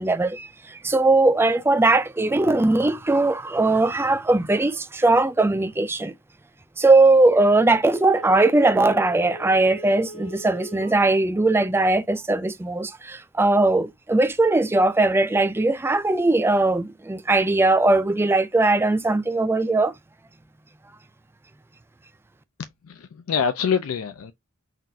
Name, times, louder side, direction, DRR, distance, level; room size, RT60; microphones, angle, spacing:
voice 1, 0.0-6.1 6.8-19.9, right 2 dB, 10° right, 0.3 m, -20 dB
Telephone, 7.9-11.0 11.4-11.5, equal, 30° left, 0.7 m, -40 dB
voice 2, 22.6-24.3, left 7 dB, 80° left, 0.4 m, -26 dB
5.7 x 2.4 x 2.7 m
head